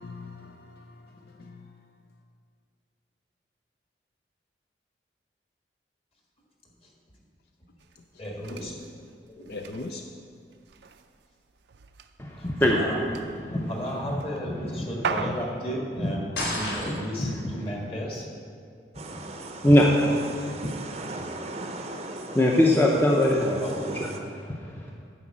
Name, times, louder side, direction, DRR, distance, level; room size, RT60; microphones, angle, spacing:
voice 1, 0.0-1.7 9.5-10.0, left 3 dB, 60° left, 0.5 m, -40 dB
sound 1, 7.8-15.8, right 5 dB, 75° right, 0.5 m, -40 dB
voice 2, 8.2-8.7 9.4-9.5 12.4-12.5 12.7-18.3 20.0-20.4 23.6-23.9, equal, 30° left, 1.6 m, -34 dB
voice 3, 12.2-12.8 13.5-13.7 14.5-14.9 16.0-16.1 16.9-17.4 19.1-19.3 19.6-19.9 20.6-20.7 21.2-21.3 22.3-24.9, left 1 dB, 10° left, 0.6 m, -23 dB
sound 2, 16.3-17.3, left 1 dB, 80° left, 2.7 m, -30 dB
sound 3, 18.9-24.2, right 2 dB, 35° right, 0.6 m, -38 dB
10.0 x 5.0 x 7.3 m
head